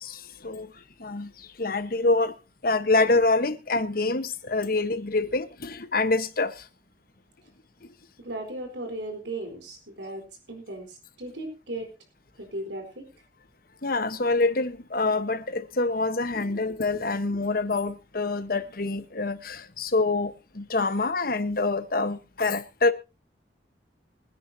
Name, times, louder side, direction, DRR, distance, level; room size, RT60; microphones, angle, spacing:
voice 1, 0.0-0.7 1.0-1.3 1.6-2.3 2.6-6.6 13.8-22.9, left 3 dB, 55° left, 1.2 m, -26 dB
voice 2, 8.2-11.9 12.4-13.0, right 1 dB, 90° right, 4.2 m, -36 dB
24.0 x 10.0 x 2.8 m
head